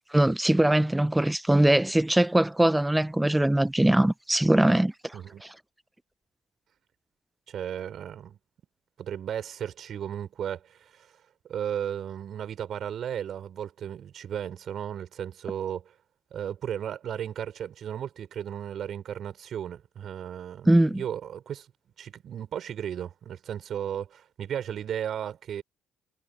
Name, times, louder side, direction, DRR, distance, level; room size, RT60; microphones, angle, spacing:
voice 1, 0.1-4.9 20.7-21.0, right 1 dB, 10° right, 0.9 m, -21 dB
voice 2, 7.5-8.4 9.0-11.1 11.5-15.9 16.3-21.7 22.0-25.6, right 9 dB, 50° right, 5.8 m, -35 dB
figure-of-eight pair, 50°, 0 cm